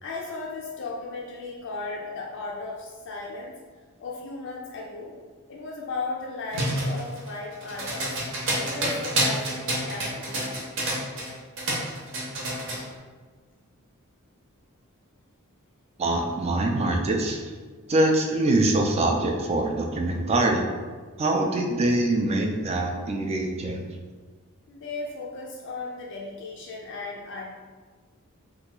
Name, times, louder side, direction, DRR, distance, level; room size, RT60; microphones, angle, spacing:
voice 1, 0.0-3.6 4.0-5.1 5.5-8.2 8.6-10.8 24.7-27.5, left 3 dB, 55° left, -2 dB, 0.4 m, -36 dB
sound 1, 6.5-11.3 11.6-12.8, right 1 dB, 60° right, 0.8 m, -28 dB
voice 2, 16.0-17.4 17.9-20.7 21.2-23.8, right 2 dB, 30° right, 2 dB, 0.3 m, -24 dB
2.8 x 2.3 x 3.7 m, 1.5 s
head